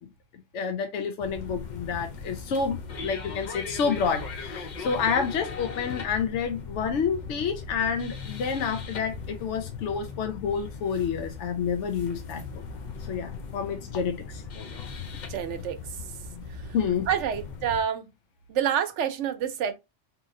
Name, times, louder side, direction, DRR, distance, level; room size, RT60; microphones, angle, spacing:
voice 1, 0.5-12.4 13.0-14.4 16.7-17.1, left 6 dB, 75° left, 0.9 m, -29 dB
sound 1, 1.2-17.8, left 5 dB, 50° left, 0.6 m, -39 dB
voice 2, 15.3-15.8 17.1-18.1 18.5-19.7, right 8 dB, 75° right, 0.9 m, -27 dB
2.8 x 2.8 x 3.7 m
omnidirectional pair, 1.3 m